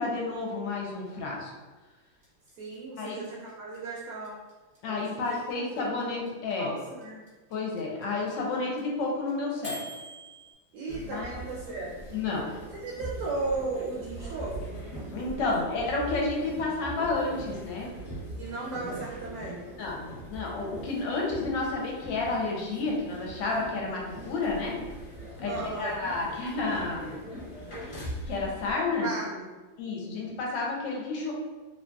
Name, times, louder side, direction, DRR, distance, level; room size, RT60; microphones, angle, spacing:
voice 1, 0.0-1.5 3.0-3.2 4.8-6.7 7.5-9.8 11.0-11.3 12.1-12.5 15.1-17.9 19.8-24.7 25.4-25.5 25.8-27.2 28.3-29.1 29.8-31.3, left 3 dB, 75° left, -2 dB, 1.2 m, -31 dB
sound 1, 2.2-10.5, right 1 dB, 45° right, 0.7 m, -43 dB
voice 2, 2.6-4.4 4.8-5.4 5.7-6.3 6.6-7.2 10.7-11.9 12.7-14.8 15.3-16.1 18.4-19.6 25.5-26.0 29.0-29.5, right 3 dB, 75° right, -4 dB, 1.0 m, -36 dB
sound 2, 10.9-28.7, right 1 dB, 45° left, 1.0 m, -41 dB
3.0 x 2.6 x 2.2 m, 1.3 s
omnidirectional pair, 2.1 m